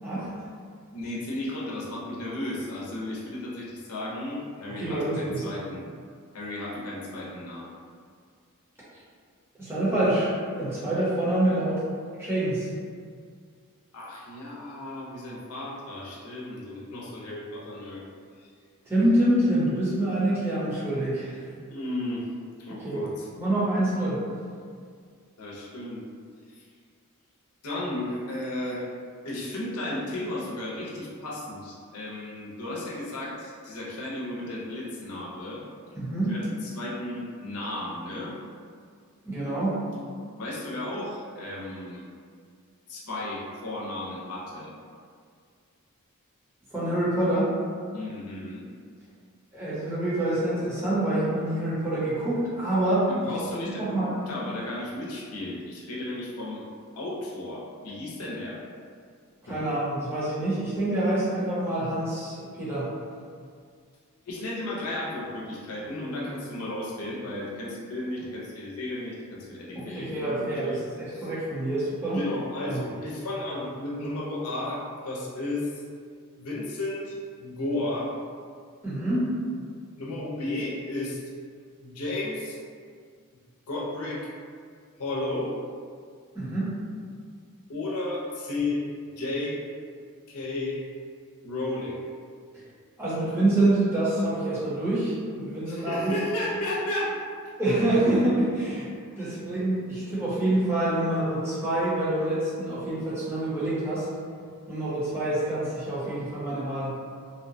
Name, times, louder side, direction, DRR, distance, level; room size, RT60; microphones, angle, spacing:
voice 1, 0.9-5.8 6.3-7.7 13.9-18.0 21.7-22.2 22.6-23.3 25.4-26.0 26.6-26.7 27.6-28.9 29.2-35.6 36.3-38.3 40.4-42.0 42.9-44.7 47.9-48.6 53.1-56.6 57.0-58.6 59.5-59.6 64.3-70.8 71.1-71.3 72.1-75.8 76.4-78.1 80.0-81.2 81.8-82.6 83.7-84.3 85.0-85.5 87.7-88.8 89.2-89.6 90.3-90.8 91.4-92.0 95.7-97.1 99.2-99.3, left 1 dB, 85° left, -4 dB, 0.6 m, -34 dB
voice 2, 4.7-5.4 9.6-10.3 10.6-11.8 12.2-12.7 18.9-21.4 22.8-23.1 23.4-24.2 35.9-36.4 39.2-39.8 46.7-47.6 49.5-53.1 53.4-54.1 59.5-62.9 69.8-72.2 72.7-72.8 78.8-79.3 86.3-86.8 93.0-96.1 97.6-98.9 99.2-104.1 104.7-106.9, right 1 dB, 10° right, -11 dB, 0.7 m, -26 dB
2.8 x 2.1 x 2.6 m, 2.1 s
head